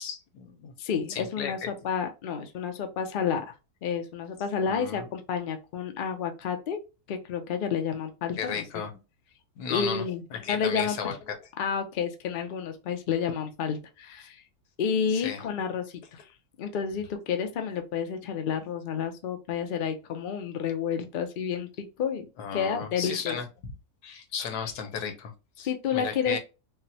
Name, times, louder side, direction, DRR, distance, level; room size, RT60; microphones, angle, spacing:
voice 1, 0.0-0.7 1.1-1.7 4.7-5.1 8.4-8.9 9.6-10.0 10.3-11.4 15.1-15.4 22.4-23.7 24.0-26.4, left 6 dB, 90° left, 1.3 m, -34 dB
voice 2, 0.8-3.5 3.8-6.8 7.1-8.6 9.7-11.0 11.6-14.4 14.8-16.2 16.6-22.3 22.5-23.4 25.6-26.4, left 7 dB, 65° left, 0.5 m, -30 dB
4.0 x 2.0 x 2.7 m
omnidirectional pair, 1.6 m